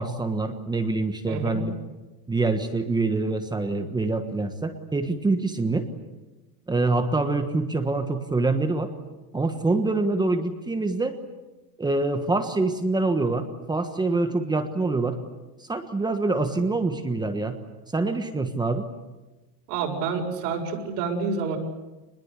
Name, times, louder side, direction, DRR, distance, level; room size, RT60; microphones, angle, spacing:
voice 1, 0.0-1.7 2.3-5.8 6.7-8.9 9.3-11.2 11.8-15.2 15.7-17.6 17.9-18.8, right 3 dB, 10° right, 7 dB, 1.3 m, -25 dB
voice 2, 1.3-1.6 19.7-21.6, right 5 dB, 90° right, 1 dB, 7.0 m, -28 dB
27.5 x 21.0 x 8.3 m, 1.1 s
cardioid pair, 165°, 47 cm